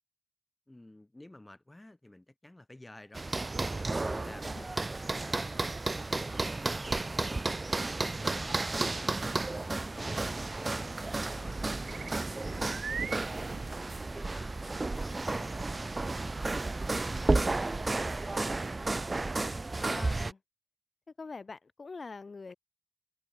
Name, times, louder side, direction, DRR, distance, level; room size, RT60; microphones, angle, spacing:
voice 1, 0.7-3.3 3.6-5.7 6.1-7.6 8.0-9.2 9.5-18.8, left 1 dB, 15° left, 4.0 m, -53 dB
sound 1, 3.1-20.3, right 2 dB, 30° right, 0.4 m, -32 dB
voice 2, 3.9-4.7 19.7-20.4 21.2-22.5, left 4 dB, 45° left, 5.5 m, -45 dB
sound 2, 11.8-18.0, right 6 dB, 80° right, 1.2 m, -45 dB
wide cardioid pair, 95°, 0 cm